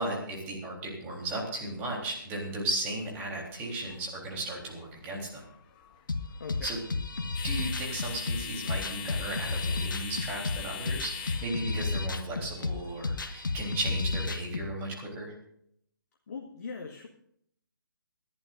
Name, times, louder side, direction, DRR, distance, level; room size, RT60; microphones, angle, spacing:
voice 1, 0.0-5.4 6.6-6.8 7.4-15.3, right 1 dB, 15° right, -1 dB, 3.5 m, -35 dB
sound 1, 2.2-13.5, left 9 dB, 25° left, 1.3 m, -43 dB
sound 2, 6.1-14.7, left 3 dB, 65° left, 1.4 m, -32 dB
voice 2, 6.4-6.7 16.3-17.1, left 5 dB, 45° left, 2 dB, 1.5 m, -40 dB
27.5 x 11.5 x 2.6 m, 0.69 s
figure-of-eight pair, 140°, 12 cm